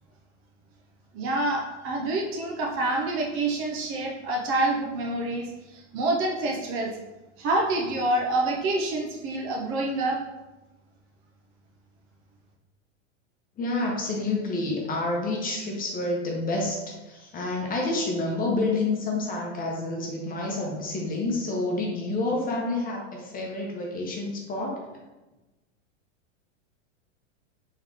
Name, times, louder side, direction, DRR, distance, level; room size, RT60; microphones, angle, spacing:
voice 1, 1.1-6.9 7.4-10.2, right 2 dB, 35° right, 0 dB, 0.6 m, -27 dB
voice 2, 13.6-24.8, left 2 dB, 25° left, -1 dB, 0.9 m, -28 dB
3.7 x 3.0 x 3.5 m, 1.1 s
hypercardioid pair, 125°, 37 cm